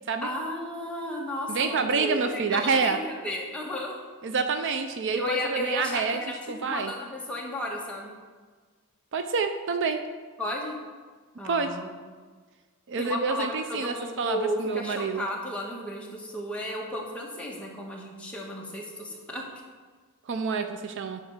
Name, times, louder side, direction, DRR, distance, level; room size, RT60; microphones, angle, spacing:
voice 1, 0.2-4.0 5.1-6.4 6.6-8.1 10.4-10.7 11.4-11.9 13.0-19.4, left 1 dB, 5° left, -3 dB, 1.5 m, -33 dB
voice 2, 1.5-3.0 4.2-6.2 6.5-6.9 9.1-10.0 11.4-11.8 12.9-15.3 20.3-21.2, right 5 dB, 55° right, 7 dB, 0.5 m, -28 dB
9.7 x 4.5 x 6.6 m, 1.5 s
head